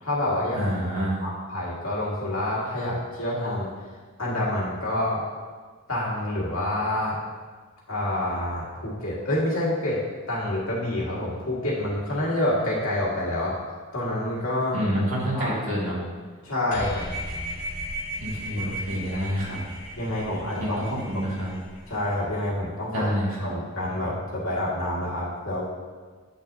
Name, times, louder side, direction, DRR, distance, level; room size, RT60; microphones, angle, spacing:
voice 1, 0.0-0.6 1.2-3.7 4.2-5.2 5.9-7.2 7.9-10.0 10.3-13.6 13.9-14.8 15.3-15.5 16.4-17.0 18.5-18.7 19.9-20.8 21.9-23.0 23.4-25.6, left 1 dB, 80° left, -6 dB, 2.0 m, -27 dB
voice 2, 0.6-1.2 14.7-16.0 18.2-19.6 20.6-21.5 22.9-23.5, equal, 85° right, -5 dB, 2.0 m, -27 dB
sound 1, 16.7-22.3, equal, 35° left, 1.6 m, -36 dB
8.7 x 6.0 x 2.7 m, 1.5 s
head